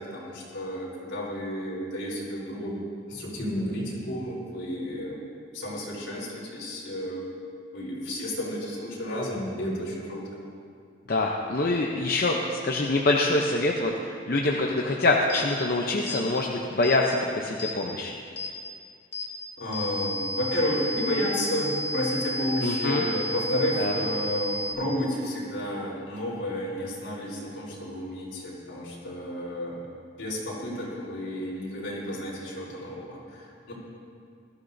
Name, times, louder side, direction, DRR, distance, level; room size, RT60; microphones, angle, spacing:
voice 1, 0.0-2.8 3.1-5.2 5.5-7.3 7.7-10.2 19.6-29.8 30.2-33.7, equal, 75° left, -5 dB, 3.8 m, -31 dB
voice 2, 11.1-18.1 22.6-23.0 23.8-23.9, left 2 dB, 50° left, 0 dB, 0.7 m, -25 dB
sound 1, 15.3-15.5 16.1-16.2 16.8-17.0 17.6-17.8 18.4-18.5 19.1-19.3 19.7-24.7, equal, 30° left, 2.2 m, -32 dB
20.0 x 13.0 x 2.7 m, 2.4 s
head